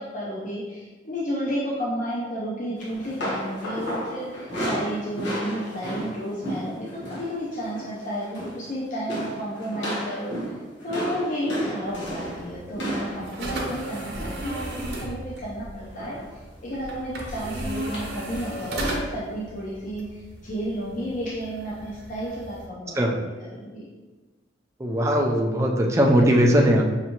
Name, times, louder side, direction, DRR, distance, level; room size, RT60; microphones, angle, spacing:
voice 1, 0.0-10.3 10.8-16.2 16.6-20.1 20.4-23.9, equal, 45° left, -7 dB, 0.6 m, -32 dB
sound 1, 2.8-7.3 7.6-7.9 8.2-8.7 9.1-15.1 16.0-16.3 16.7-16.9 17.9-18.0, equal, 80° left, 1.2 m, -33 dB
sound 2, 11.8-22.7, right 1 dB, 60° right, 0.8 m, -35 dB
voice 2, 24.8-26.8, equal, 15° right, 0 dB, 0.4 m, -19 dB
5.8 x 2.7 x 2.9 m, 1.3 s
head